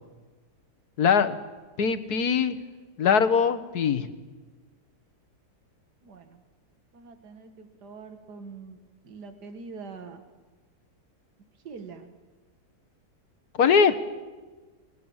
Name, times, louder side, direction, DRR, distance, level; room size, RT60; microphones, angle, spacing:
voice 1, 1.0-1.4 1.8-2.6 3.0-4.1 13.6-13.9, left 6 dB, 70° left, 9 dB, 1.8 m, -21 dB
voice 2, 6.0-6.4 6.9-8.8 9.0-10.2 11.6-12.1, right 4 dB, 80° right, 7 dB, 2.3 m, -44 dB
30.0 x 19.5 x 7.3 m, 1.3 s
omnidirectional pair, 1.7 m